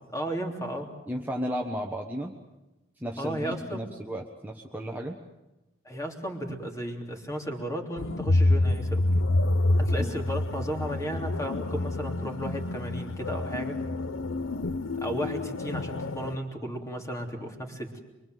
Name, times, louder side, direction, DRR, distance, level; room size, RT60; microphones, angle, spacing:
voice 1, 0.1-0.9 3.2-3.8 5.8-9.0 9.8-13.8 15.0-18.0, equal, 15° left, 2 dB, 3.2 m, -34 dB
voice 2, 1.1-2.3 3.0-5.2 10.0-10.1, equal, 10° right, 1 dB, 1.3 m, -34 dB
sound 1, 8.0-16.4, left 2 dB, 85° left, 0.8 m, -27 dB
24.5 x 24.0 x 7.8 m, 1.0 s
head